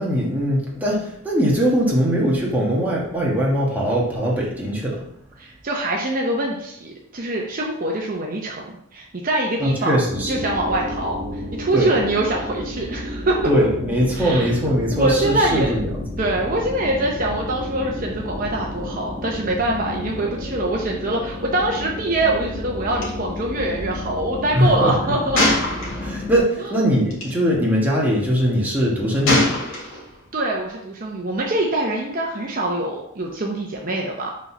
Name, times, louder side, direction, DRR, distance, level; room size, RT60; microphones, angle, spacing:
voice 1, 0.0-5.0 9.6-10.3 11.7-11.9 13.4-16.0 24.5-25.1 26.0-29.6, equal, 10° right, -5 dB, 1.5 m, -21 dB
voice 2, 5.4-10.0 10.3-13.5 14.1-14.5 14.9-15.7 16.2-25.4 26.6-26.8 30.3-34.3, right 1 dB, 45° right, -1 dB, 0.9 m, -24 dB
sound 1, 10.1-26.4, left 1 dB, 20° left, 1.3 m, -32 dB
Gunshot gunfire, 23.0-23.1 23.4-23.5 25.3-26.3 27.1-27.3 29.3-30.2, left 1 dB, 85° left, 2.0 m, -22 dB
5.4 x 4.1 x 5.5 m, 0.74 s
head